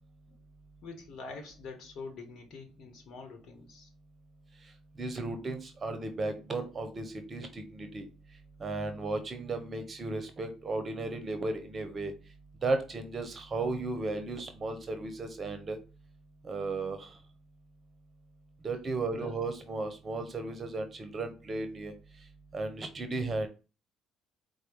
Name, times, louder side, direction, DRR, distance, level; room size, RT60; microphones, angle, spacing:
voice 1, 0.8-3.9 19.1-19.4, left 4 dB, 60° left, 5 dB, 1.1 m, -45 dB
voice 2, 5.0-8.1 8.6-12.1 12.6-15.8 16.4-17.1 18.6-21.9 22.5-23.5, right 3 dB, 35° right, 8 dB, 0.9 m, -35 dB
4.7 x 2.3 x 4.6 m, 0.32 s
hypercardioid pair, 55°, 0 cm